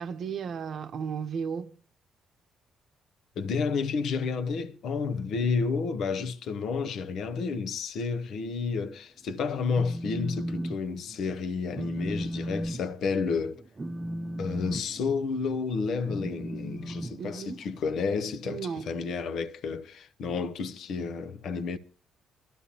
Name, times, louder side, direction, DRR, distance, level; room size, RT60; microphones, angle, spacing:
voice 1, 0.0-1.7 17.2-17.6 18.4-18.9, right 6 dB, 60° right, 0.7 m, -34 dB
voice 2, 3.4-13.6 14.4-21.8, left 5 dB, 70° left, 0.7 m, -31 dB
Telephone, 9.5-10.8 11.1-11.4 11.7-17.8, right 1 dB, 25° right, 0.7 m, -36 dB
22.5 x 12.5 x 2.9 m
cardioid pair, 90°, 0 cm